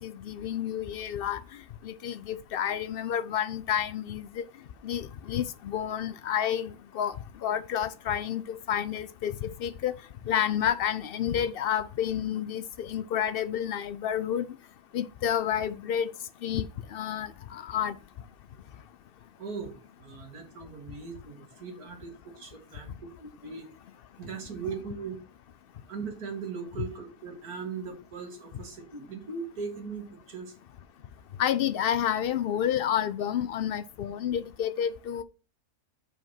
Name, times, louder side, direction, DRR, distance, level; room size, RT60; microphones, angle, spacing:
voice 1, 0.0-1.4 1.8-4.5 4.8-7.1 7.4-9.9 10.3-14.5 14.9-16.1 16.4-18.0 31.4-35.2, left 9 dB, 85° left, 0.5 m, -30 dB
voice 2, 19.4-23.7 24.2-25.2 25.9-30.5, right 5 dB, 80° right, 2.2 m, -39 dB
7.8 x 5.0 x 5.6 m
omnidirectional pair, 1.6 m